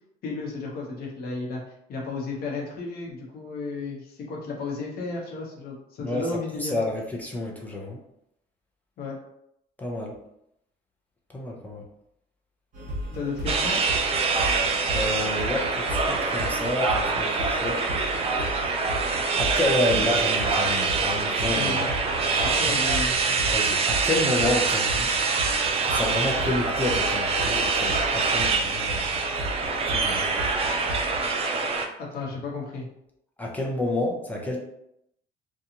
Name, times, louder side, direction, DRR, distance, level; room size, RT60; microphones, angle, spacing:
voice 1, 0.2-1.6 1.9-6.7 9.0-9.1 13.1-13.8 19.9-20.1 21.5-21.9 22.4-23.4 32.0-32.9, left 3 dB, 65° left, -2 dB, 0.9 m, -33 dB
voice 2, 6.0-8.0 9.8-10.1 11.3-11.8 14.5-17.8 19.4-21.8 22.7-22.8 23.5-25.1 25.9-29.1 29.9-30.3 33.4-34.6, left 1 dB, 10° left, -2 dB, 0.7 m, -29 dB
sound 1, 12.7-31.3, equal, 50° right, 1.0 m, -36 dB
sound 2, 13.5-31.9, right 4 dB, 35° right, 0.4 m, -25 dB
2.5 x 2.3 x 2.8 m, 0.79 s
cardioid pair, 110°, 17 cm